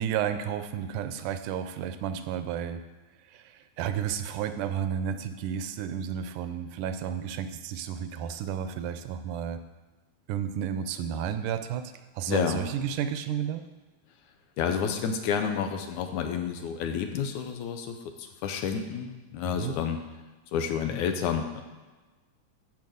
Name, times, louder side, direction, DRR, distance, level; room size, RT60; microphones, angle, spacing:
voice 1, 0.0-2.8 3.3-9.6 10.3-13.6 19.5-19.8, right 8 dB, 80° right, 9 dB, 2.1 m, -32 dB
voice 2, 12.3-12.6 14.6-20.0 20.5-21.6, left 7 dB, 75° left, 6 dB, 2.2 m, -30 dB
11.0 x 5.2 x 7.7 m, 1.2 s
omnidirectional pair, 3.7 m